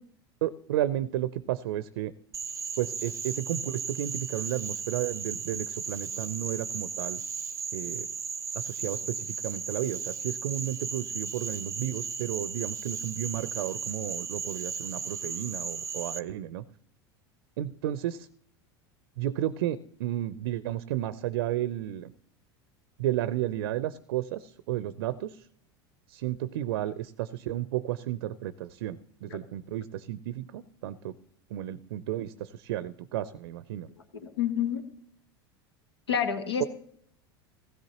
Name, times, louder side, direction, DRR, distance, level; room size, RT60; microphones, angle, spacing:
voice 1, 0.4-2.1 2.8-7.2 7.7-8.1 8.5-16.6 17.6-18.3 19.2-22.1 23.0-25.5 26.1-31.1 31.5-33.9 36.6-36.7, right 13 dB, 70° right, 16 dB, 0.5 m, -32 dB
Frog, 2.3-16.2, right 6 dB, 25° right, 0.6 m, -36 dB
voice 2, 34.1-34.8 36.1-36.7, left 8 dB, 85° left, 8 dB, 1.3 m, -28 dB
16.0 x 16.0 x 2.9 m, 0.66 s
hypercardioid pair, 85°, 13 cm